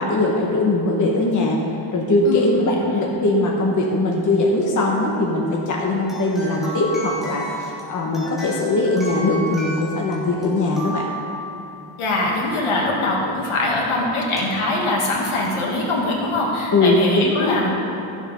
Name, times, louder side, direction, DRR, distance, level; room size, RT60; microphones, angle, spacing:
voice 1, 0.0-1.6 1.9-11.0 16.7-17.7, left 2 dB, 35° left, -2 dB, 1.2 m, -20 dB
voice 2, 2.2-3.0 12.0-17.7, left 2 dB, 80° left, -2 dB, 2.3 m, -22 dB
sound 1, 6.0-12.0 14.4-14.5 15.4-15.5, right 1 dB, ahead, 2.0 m, -33 dB
13.0 x 7.6 x 5.3 m, 2.8 s
wide cardioid pair, 170°, 49 cm